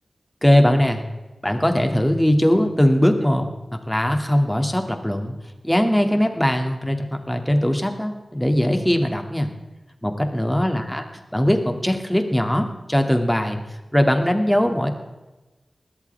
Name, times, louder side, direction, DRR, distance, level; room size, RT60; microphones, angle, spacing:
voice 1, 0.4-1.1 1.4-5.4 5.6-9.5 10.0-11.0 11.3-13.6 13.9-14.9, equal, 10° left, 5 dB, 2.4 m, -20 dB
20.0 x 13.5 x 3.5 m, 1.1 s
wide cardioid pair, 55°, 0 cm